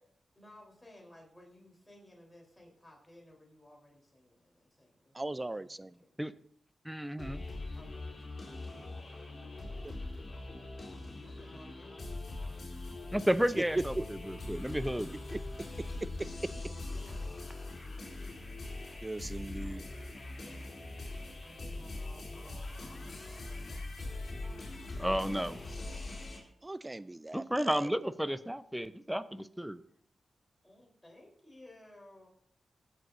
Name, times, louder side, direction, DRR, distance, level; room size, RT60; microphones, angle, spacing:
voice 1, 0.3-6.2 7.7-8.5 9.4-9.9 11.2-12.7 16.5-17.7 19.6-20.7 21.4-25.8 30.6-32.3, left 1 dB, 10° left, -2 dB, 3.7 m, -58 dB
voice 2, 5.1-6.0 14.0-14.1 15.3-15.4 16.0-16.5 19.0-19.8 26.6-27.9, right 2 dB, 25° right, 17 dB, 0.3 m, -39 dB
voice 3, 6.8-7.4 13.1-15.1 25.0-25.6 27.3-29.8, equal, 5° right, 13 dB, 0.7 m, -32 dB
sound 1, 7.2-26.4, left 2 dB, 50° left, 4.0 m, -42 dB
17.5 x 7.8 x 2.6 m, 0.67 s
cardioid pair, 55°, 0 cm